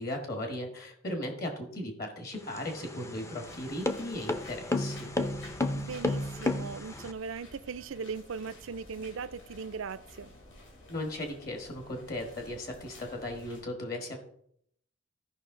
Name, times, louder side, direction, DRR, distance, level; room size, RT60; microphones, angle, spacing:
voice 1, 0.0-5.1 10.9-14.2, left 1 dB, 45° left, 4 dB, 1.4 m, -37 dB
sound 1, 2.4-7.1, left 2 dB, 15° left, 0.5 m, -32 dB
sound 2, 3.4-13.6, left 1 dB, 60° left, 2.6 m, -52 dB
voice 2, 5.8-10.3, right 5 dB, 70° right, 14 dB, 0.4 m, -39 dB
14.5 x 5.4 x 3.7 m, 0.68 s
head